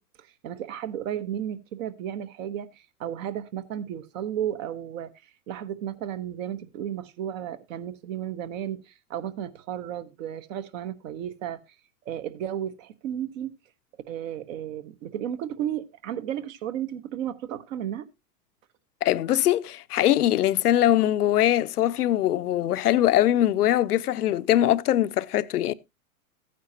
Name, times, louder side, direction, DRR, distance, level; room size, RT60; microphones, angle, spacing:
voice 1, 0.2-11.6 12.0-13.5 14.1-18.1, right 10 dB, 60° right, 1.2 m, -33 dB
voice 2, 19.0-25.7, left 12 dB, 90° left, 0.7 m, -22 dB
14.5 x 9.4 x 2.8 m
hypercardioid pair, 125°, 45 cm